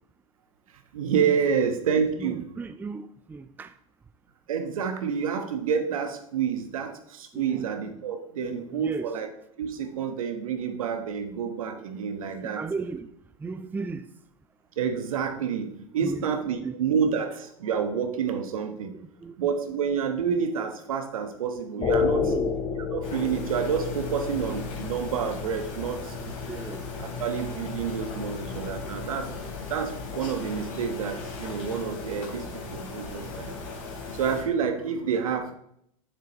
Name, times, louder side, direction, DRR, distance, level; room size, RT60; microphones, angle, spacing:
voice 1, 0.9-2.4 4.5-6.9 7.2-9.3 9.6-12.6 14.8-15.7 15.9-18.9 19.4-22.3 22.9-26.0 27.2-29.3 29.7-32.4 32.7-33.5 34.1-35.6, right 7 dB, 80° right, 1.2 m, -28 dB
voice 2, 2.2-3.7 7.3-7.7 8.4-9.1 11.8-12.1 12.5-13.1 13.4-14.1 16.0-16.3 16.6-16.7 18.9-19.5 21.8-22.5 26.4-26.9, right 4 dB, 10° right, 0.4 m, -36 dB
sound 1, 21.8-32.0, left 6 dB, 35° left, 1.3 m, -33 dB
sound 2, 23.0-34.4, left 3 dB, 55° left, 3.0 m, -38 dB
8.7 x 6.7 x 3.0 m
hypercardioid pair, 100°, 18 cm